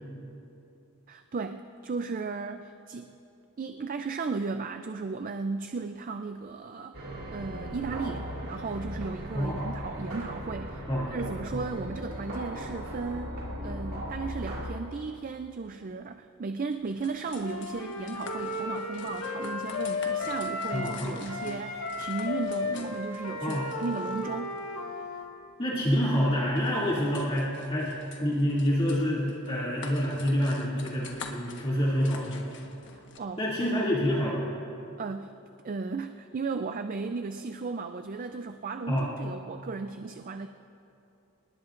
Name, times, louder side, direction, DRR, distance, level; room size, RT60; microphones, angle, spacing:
voice 1, 1.1-3.2 3.6-7.0 7.3-10.8 11.1-24.6 32.9-33.4 35.0-35.3 35.6-40.5, right 4 dB, 40° right, 8 dB, 0.4 m, -35 dB
sound 1, 6.9-14.7, equal, 70° right, 3.5 m, -37 dB
sound 2, 16.7-33.2, left 4 dB, 55° left, 1.3 m, -48 dB
Wind instrument woodwind instrument, 17.3-21.0 21.3-25.3, left 3 dB, 80° left, 1.8 m, -34 dB
voice 2, 20.7-21.2 23.4-23.7 25.6-32.4 33.4-34.5 38.9-39.1, equal, 25° left, -8 dB, 2.5 m, -27 dB
28.5 x 19.5 x 2.5 m, 2.9 s
head